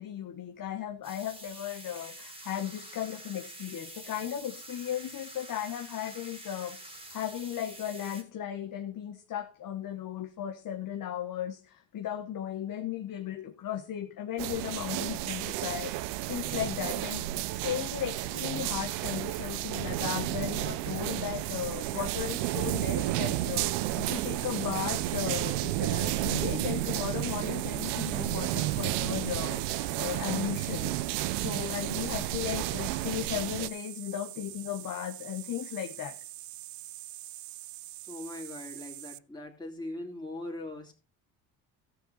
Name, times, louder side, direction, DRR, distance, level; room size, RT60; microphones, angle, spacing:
voice 1, 0.0-36.2, left 10 dB, 50° left, 1.1 m, -36 dB
sound 1, 1.0-8.2, right 1 dB, 15° right, 2.5 m, -47 dB
sound 2, 14.4-33.7, right 15 dB, 80° right, 0.8 m, -32 dB
sound 3, 21.2-39.2, right 15 dB, 45° right, 0.5 m, -44 dB
voice 2, 38.1-41.0, left 1 dB, 10° left, 2.9 m, -40 dB
14.0 x 6.8 x 4.1 m
supercardioid pair, 75°, 42 cm